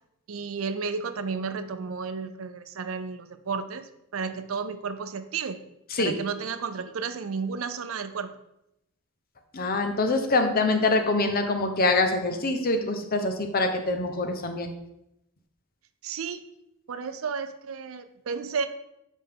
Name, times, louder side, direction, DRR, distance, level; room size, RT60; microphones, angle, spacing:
voice 1, 0.3-5.6 6.0-8.3 16.0-16.5 16.9-18.7, right 5 dB, 80° right, 10 dB, 0.5 m, -32 dB
voice 2, 9.5-14.7, left 2 dB, 45° left, 6 dB, 0.9 m, -24 dB
7.9 x 5.2 x 3.6 m, 0.83 s
head